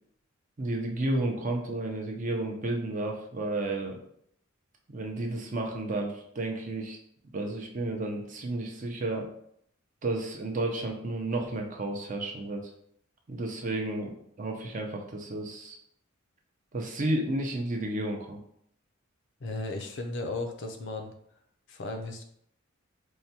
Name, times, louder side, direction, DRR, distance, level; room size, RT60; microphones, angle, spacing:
voice 1, 0.6-4.0 4.9-7.0 7.3-9.3 10.0-12.6 13.3-15.8 16.7-18.4, right 2 dB, 35° right, 1 dB, 0.5 m, -32 dB
voice 2, 19.4-21.1 21.7-22.2, left 2 dB, 60° left, 4 dB, 0.5 m, -35 dB
4.5 x 2.2 x 2.8 m, 0.68 s
head